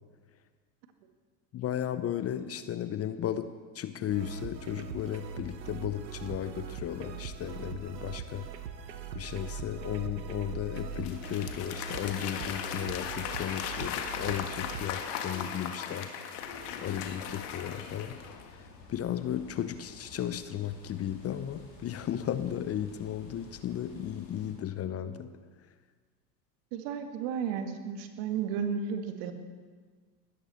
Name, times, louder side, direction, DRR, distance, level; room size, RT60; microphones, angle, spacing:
voice 1, 1.5-8.5 9.1-16.1 16.8-18.2 18.4-25.4, left 10 dB, 30° left, 12 dB, 0.8 m, -35 dB
sound 1, 4.1-14.9, right 5 dB, 85° right, 1.1 m, -41 dB
Applause / Crowd, 10.8-18.5, left 8 dB, 55° left, 1.8 m, -38 dB
sound 2, 16.3-24.5, left 3 dB, 80° left, 3.7 m, -53 dB
voice 2, 26.7-29.3, right 7 dB, 55° right, 6 dB, 1.9 m, -33 dB
20.0 x 13.5 x 4.3 m, 1.5 s
hypercardioid pair, 80°, 49 cm